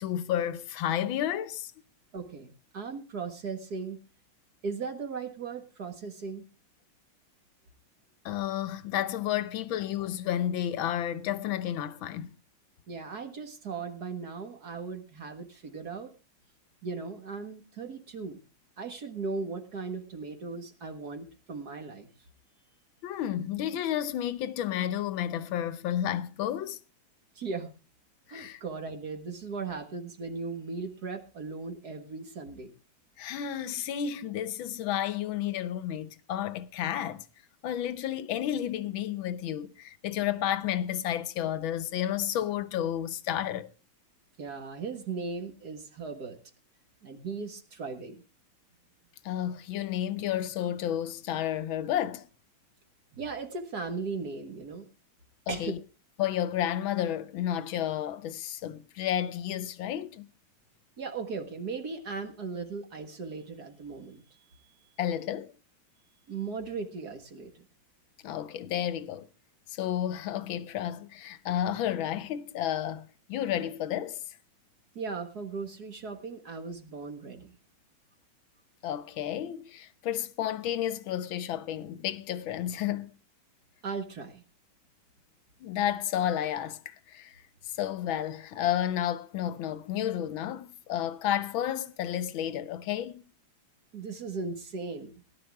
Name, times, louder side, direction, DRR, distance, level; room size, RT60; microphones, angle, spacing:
voice 1, 0.0-1.7 8.2-12.3 23.0-26.8 28.3-28.6 33.2-37.2 37.6-43.7 49.2-52.3 55.5-55.8 56.2-60.3 65.0-65.5 68.2-69.3 69.7-74.2 78.8-83.1 85.6-87.4 87.8-93.2, left 11 dB, 75° left, 1.6 m, -31 dB
voice 2, 2.1-4.0 4.6-6.5 12.9-16.1 16.8-18.4 18.8-22.1 27.4-27.7 28.3-32.7 44.4-46.4 47.0-48.2 53.1-54.9 55.5-55.8 61.0-64.9 66.3-67.7 75.0-77.5 83.8-84.4 93.9-95.1, right 4 dB, 50° right, 1.9 m, -37 dB
18.0 x 11.0 x 3.5 m
omnidirectional pair, 2.3 m